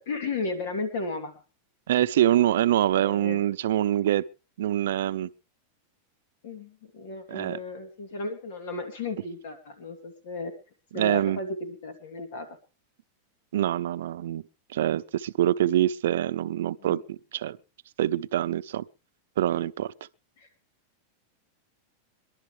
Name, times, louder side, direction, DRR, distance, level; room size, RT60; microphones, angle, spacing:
voice 1, 0.0-1.3 3.0-3.4 6.4-10.5 10.9-12.6 16.8-17.0 20.4-20.5, left 3 dB, 70° left, 2.9 m, -34 dB
voice 2, 1.9-4.2 4.6-5.3 7.3-7.6 10.9-11.4 13.5-14.4 14.7-17.6 18.0-18.8 19.4-19.9, right 12 dB, 80° right, 0.6 m, -25 dB
23.5 x 11.5 x 3.4 m
supercardioid pair, 145°, 0 cm